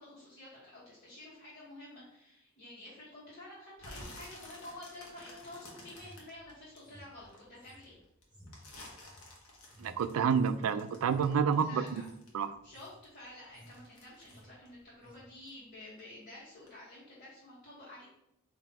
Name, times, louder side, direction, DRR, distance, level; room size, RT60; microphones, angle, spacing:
voice 1, 0.0-8.0 11.6-12.0 12.6-18.0, left 1 dB, 35° left, -10 dB, 1.4 m, -50 dB
sound 1, 3.8-7.4 7.8-12.6 12.9-15.6 15.9-16.2 16.7-16.8, left 1 dB, 80° left, 1.1 m, -52 dB
sound 2, 5.8-10.6 10.9-11.3 11.8-12.2 12.5-13.0 13.3-13.8 14.1-14.5 15.0-15.2, equal, 20° right, 1.4 m, -57 dB
voice 2, 9.8-11.8 12.3-12.6, right 6 dB, 70° right, 12 dB, 0.3 m, -29 dB
4.0 x 2.7 x 4.2 m, 0.80 s
head